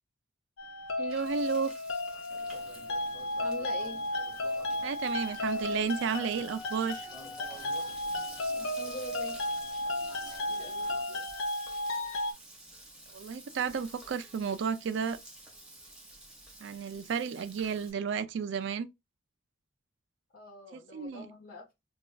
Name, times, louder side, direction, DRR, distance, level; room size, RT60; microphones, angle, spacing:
sound 1, 0.6-12.3, left 1 dB, 85° left, 0.6 m, -34 dB
Frying (food), 0.6-17.9, right 1 dB, 5° right, 1.0 m, -51 dB
voice 1, 1.0-1.7 4.8-7.1 13.1-15.2 16.6-18.9 20.7-21.3, right 6 dB, 60° right, 0.3 m, -32 dB
sound 2, 2.3-11.0, right 1 dB, 20° left, 1.8 m, -53 dB
voice 2, 3.4-4.0 8.5-9.4 10.4-11.3 20.3-21.7, left 2 dB, 45° left, 1.2 m, -45 dB
4.9 x 2.3 x 2.3 m
head